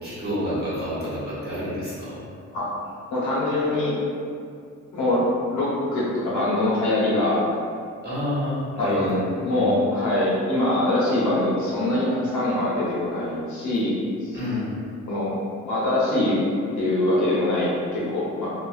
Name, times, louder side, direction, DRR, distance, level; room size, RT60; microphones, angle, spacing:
voice 1, 0.0-2.2 8.0-9.1 9.5-9.7 14.3-14.7, left 1 dB, 35° right, -11 dB, 1.4 m, -29 dB
voice 2, 3.1-3.9 4.9-5.2 5.5-7.4 8.8-14.0 14.2-14.3 15.1-15.3 15.6-16.4 16.8-18.5, left 1 dB, 75° left, -7 dB, 0.9 m, -23 dB
2.4 x 2.4 x 2.4 m, 2.3 s
cardioid pair, 90°, 30 cm